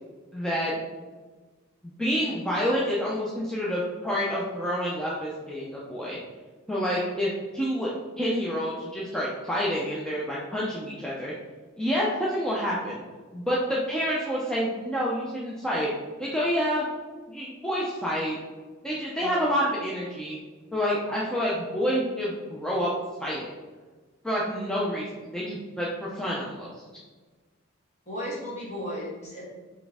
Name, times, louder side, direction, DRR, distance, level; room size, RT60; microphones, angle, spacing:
voice 1, 0.3-0.8 1.8-6.2 6.7-11.3 11.8-13.0 13.3-15.9 16.2-16.8 17.3-18.4 18.8-20.4 20.7-22.9 23.2-23.5 24.2-26.7, equal, 5° left, -6 dB, 0.5 m, -28 dB
voice 2, 28.1-29.4, equal, 35° left, -5 dB, 1.3 m, -35 dB
4.2 x 3.4 x 3.5 m, 1.3 s
head